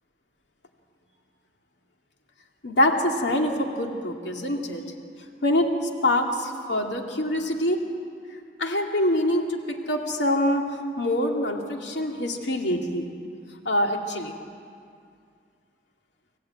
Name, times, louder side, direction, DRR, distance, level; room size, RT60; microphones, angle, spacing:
voice 1, 2.6-4.8 5.4-5.7 6.0-7.8 8.6-13.1 13.6-14.3, left 1 dB, 85° left, 2 dB, 2.3 m, -25 dB
26.5 x 16.5 x 9.0 m, 2.3 s
head